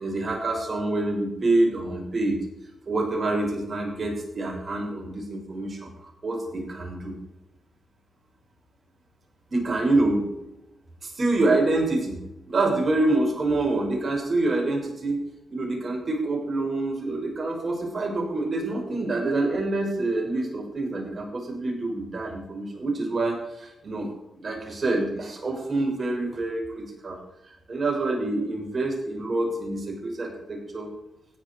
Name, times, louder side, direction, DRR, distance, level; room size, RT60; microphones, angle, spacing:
voice 1, 0.0-2.4 2.9-7.1 9.5-10.3 11.0-12.2 12.5-15.2 15.5-24.1 24.3-27.2 27.7-30.9, right 2 dB, 40° right, 0 dB, 6.5 m, -26 dB
16.5 x 10.5 x 4.8 m, 0.91 s
cardioid pair, 65°, 0 cm